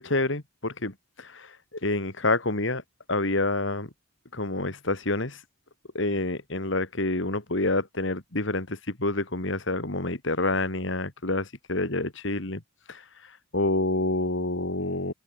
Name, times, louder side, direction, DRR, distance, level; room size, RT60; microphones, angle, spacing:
voice 1, 0.0-1.6 1.8-2.8 3.1-3.9 4.3-5.4 5.9-12.6 12.9-15.1, left 2 dB, 60° left, 2.4 m, -28 dB
head